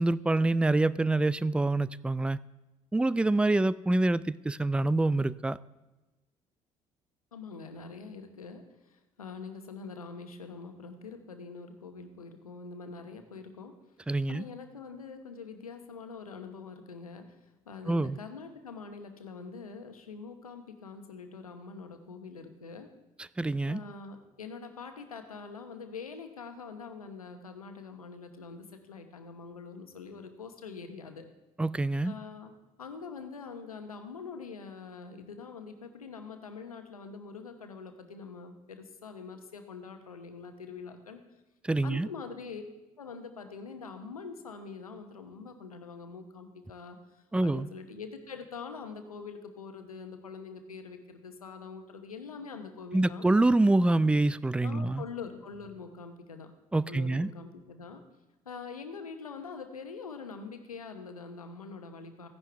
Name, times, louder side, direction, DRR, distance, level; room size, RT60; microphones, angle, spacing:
voice 1, 0.0-2.4 2.9-5.6 14.1-14.4 17.9-18.2 23.4-23.8 31.6-32.1 41.7-42.1 47.3-47.7 52.9-55.0 56.7-57.3, right 2 dB, 5° right, 18 dB, 0.3 m, -26 dB
voice 2, 7.3-13.7 14.0-17.4 17.7-22.9 23.7-31.3 32.0-32.5 32.8-41.2 41.8-42.6 43.0-47.0 47.4-53.3 54.6-56.5 56.9-58.0 58.4-62.3, left 5 dB, 90° left, 7 dB, 0.9 m, -44 dB
15.5 x 10.5 x 3.4 m, 1.1 s
figure-of-eight pair, 55°, 18 cm